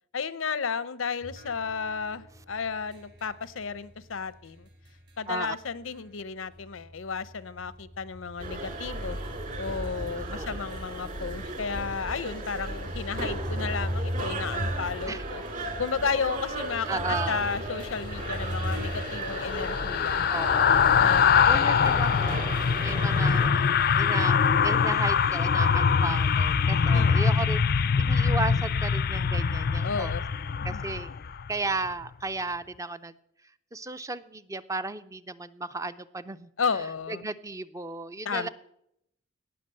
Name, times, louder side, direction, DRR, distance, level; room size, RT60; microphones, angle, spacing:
voice 1, 0.1-4.7 5.2-9.2 9.6-15.4 15.8-20.3 21.0-21.8 26.9-27.3 29.8-30.2 30.7-30.8 36.6-37.2 38.2-38.5, left 5 dB, 85° left, 17 dB, 0.7 m, -33 dB
sound 1, 1.2-6.2 6.5-11.2 11.8-11.9 12.6-19.0, equal, 55° right, 3.4 m, -38 dB
sound 2, 8.4-23.5, right 2 dB, 40° right, 2.7 m, -35 dB
voice 2, 16.9-17.4 20.3-20.9 21.5-23.7 24.0-30.1 30.6-31.1 31.5-33.1 33.7-36.5 37.1-38.5, right 3 dB, 15° right, 13 dB, 0.4 m, -34 dB
sound 3, 18.2-31.5 31.9-32.1, left 6 dB, 50° left, 0.4 m, -23 dB
17.5 x 6.0 x 7.5 m, 0.76 s
head